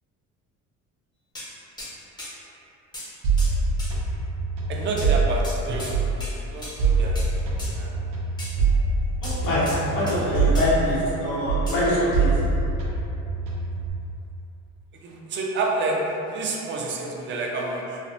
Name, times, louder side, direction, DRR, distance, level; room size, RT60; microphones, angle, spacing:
sound 1, 1.4-1.5 1.8-2.3 2.9-3.1 3.4-3.5 3.8-3.9 5.0-5.1 5.4-6.0 6.2-6.3 6.6-6.8 7.2-7.3 7.6-7.7 8.4-8.5 9.2-10.2 10.6-10.7 11.7-11.8, left 1 dB, 15° left, 0.5 m, -37 dB
sound 2, 3.2-6.3 6.8-11.2 11.5-13.9, right 3 dB, 90° right, 0.6 m, -24 dB
voice 1, 4.7-7.2 7.5-7.9 11.2-11.3 15.0-18.0, right 2 dB, 40° right, -1 dB, 0.4 m, -29 dB
voice 2, 9.2-12.3, left 1 dB, 90° left, -9 dB, 1.0 m, -24 dB
3.2 x 2.0 x 2.6 m, 3.0 s
cardioid pair, 140°, 30 cm